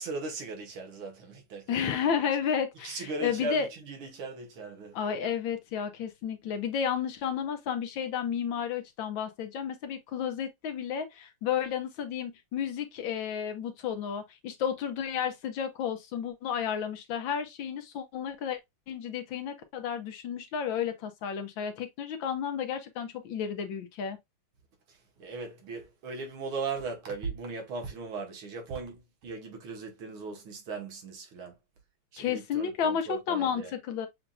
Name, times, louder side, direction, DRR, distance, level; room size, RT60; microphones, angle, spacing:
voice 1, 0.0-2.0 2.8-5.0 24.9-31.6 32.1-33.7, right 3 dB, 80° right, 2.2 m, -38 dB
voice 2, 1.7-3.7 4.9-18.6 18.9-24.2 32.2-34.1, left 8 dB, 70° left, 1.5 m, -32 dB
6.9 x 2.8 x 2.3 m
omnidirectional pair, 2.3 m